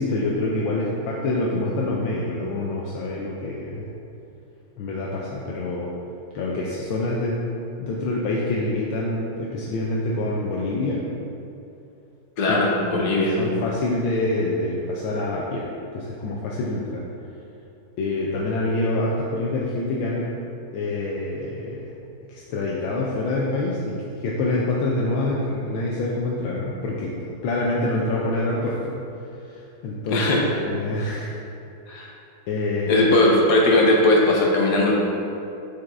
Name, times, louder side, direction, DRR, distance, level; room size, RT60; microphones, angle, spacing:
voice 1, 0.0-3.9 4.8-5.9 6.3-7.4 7.8-11.1 12.5-12.6 12.9-15.7 15.9-17.0 18.0-20.3 20.7-21.9 22.3-29.0 29.5-30.3 30.6-31.3 32.5-33.1, left 2 dB, 90° left, -4 dB, 1.5 m, -26 dB
voice 2, 12.4-13.4 30.1-30.4 31.9-32.1 32.9-34.9, left 2 dB, 60° left, -2 dB, 1.4 m, -18 dB
6.5 x 5.7 x 3.6 m, 2.7 s
omnidirectional pair, 2.2 m